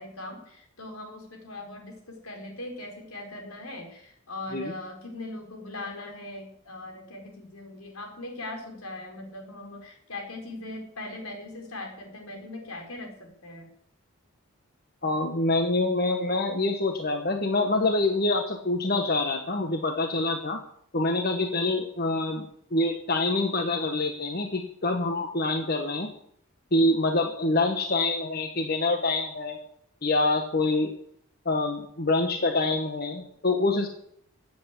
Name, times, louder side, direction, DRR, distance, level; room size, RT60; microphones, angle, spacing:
voice 1, 0.0-13.7, left 2 dB, 85° left, 3 dB, 4.4 m, -40 dB
voice 2, 15.0-20.6 20.9-26.1 26.7-29.6 30.0-30.9 31.4-33.9, left 2 dB, 45° left, 4 dB, 1.3 m, -26 dB
15.5 x 8.2 x 8.3 m, 0.67 s
head